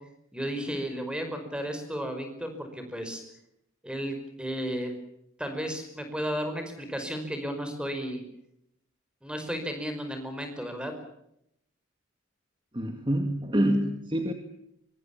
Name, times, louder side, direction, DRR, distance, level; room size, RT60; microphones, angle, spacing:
voice 1, 0.3-3.2 3.8-4.9 5.4-8.2 9.2-10.9, equal, 5° right, 7 dB, 5.2 m, -33 dB
voice 2, 12.7-14.3, right 1 dB, 25° right, 6 dB, 2.0 m, -26 dB
24.5 x 24.0 x 7.2 m, 0.78 s
head